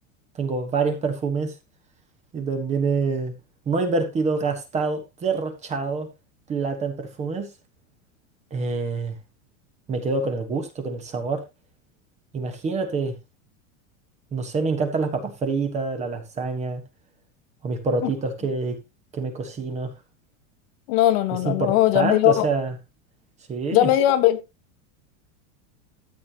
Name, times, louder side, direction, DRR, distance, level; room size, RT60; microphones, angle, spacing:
voice 1, 0.3-1.5 2.3-3.3 3.7-6.1 6.5-7.5 8.5-9.1 9.9-11.4 12.3-13.1 14.3-16.8 17.6-18.8 19.1-19.9 21.4-22.7 23.5-23.9, right 4 dB, 15° right, 1.3 m, -26 dB
voice 2, 20.9-22.5 23.7-24.4, left 13 dB, 45° left, 1.4 m, -19 dB
13.5 x 8.5 x 2.9 m
supercardioid pair, 175°, 41 cm